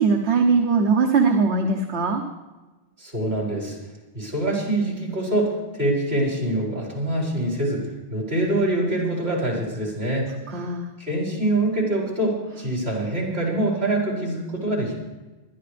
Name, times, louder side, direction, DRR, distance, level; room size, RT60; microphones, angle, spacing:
voice 1, 0.0-2.2 10.5-10.9, right 4 dB, 85° right, 3 dB, 1.3 m, -20 dB
voice 2, 3.0-3.8 4.1-10.3 11.0-15.0, right 1 dB, 70° right, -3 dB, 5.1 m, -25 dB
21.5 x 12.5 x 3.4 m, 1.2 s
omnidirectional pair, 1.1 m